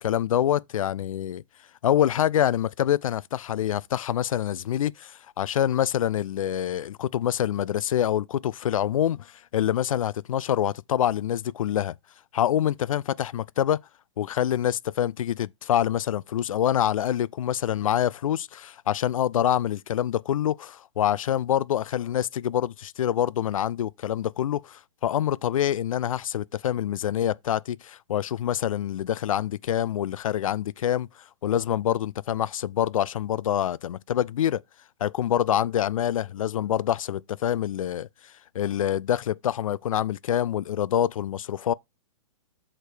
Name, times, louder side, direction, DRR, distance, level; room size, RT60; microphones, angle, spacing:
voice 1, 0.0-1.4 1.8-11.9 12.3-13.8 14.2-31.1 31.4-34.6 35.0-38.1 38.5-41.7, left 10 dB, 85° left, 0.4 m, -26 dB
6.6 x 5.0 x 4.5 m
hypercardioid pair, 145°, 17 cm